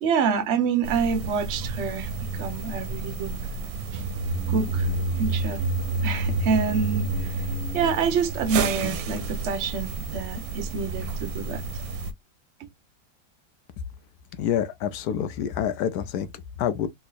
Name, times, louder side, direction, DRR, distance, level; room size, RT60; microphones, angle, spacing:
voice 1, 0.0-3.3 3.9-4.1 4.5-4.9 5.2-5.6 6.0-7.4 7.7-11.6, right 5 dB, 60° right, 0.7 m, -27 dB
sound 1, 0.8-12.1, right 3 dB, 90° right, 1.3 m, -29 dB
voice 2, 14.4-16.3 16.6-16.9, left 9 dB, 70° left, 1.0 m, -27 dB
3.4 x 3.0 x 2.4 m
omnidirectional pair, 2.0 m